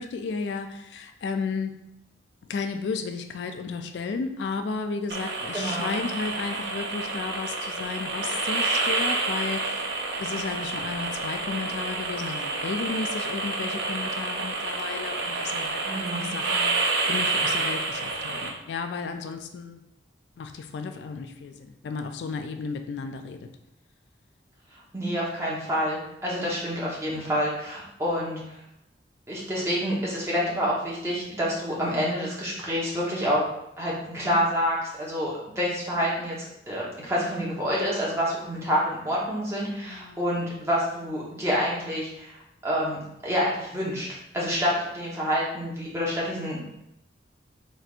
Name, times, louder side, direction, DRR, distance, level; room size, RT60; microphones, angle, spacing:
voice 1, 0.0-1.7 2.5-9.9 10.2-19.8 20.4-23.5 39.9-40.2, left 4 dB, 70° left, 6 dB, 0.3 m, -33 dB
sound 1, 5.1-18.5, right 3 dB, 65° right, 0.6 m, -29 dB
voice 2, 5.5-6.0 15.8-16.3 24.9-28.6 29.3-33.4 33.8-36.3 36.7-44.1 44.3-46.6, equal, 15° right, -6 dB, 1.0 m, -28 dB
4.2 x 3.4 x 2.5 m, 0.81 s
head